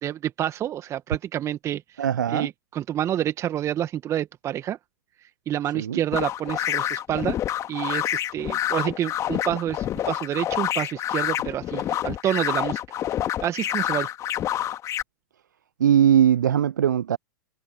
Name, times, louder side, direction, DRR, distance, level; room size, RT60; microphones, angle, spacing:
voice 1, 0.0-2.0 2.3-4.8 5.5-7.4 7.7-12.8 13.4-14.1, right 11 dB, 30° right, 1.6 m, -28 dB
voice 2, 2.0-2.5 5.7-6.0 15.8-17.2, right 9 dB, 80° right, 0.4 m, -20 dB
sound 1, 6.1-15.0, left 12 dB, 30° left, 1.9 m, -28 dB
hypercardioid pair, 100°, 10 cm